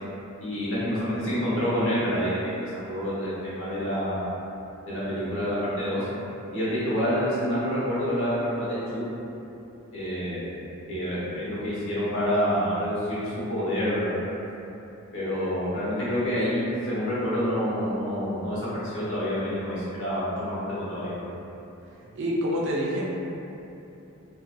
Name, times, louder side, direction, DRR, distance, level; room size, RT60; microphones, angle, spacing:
voice 1, 0.4-2.5 2.9-4.3 4.8-6.1 6.5-9.0 9.9-10.6 10.9-14.1 15.1-21.1, equal, 65° left, -10 dB, 0.9 m, -27 dB
voice 2, 22.2-23.0, equal, 60° right, -4 dB, 0.5 m, -26 dB
2.7 x 2.4 x 2.2 m, 2.9 s
head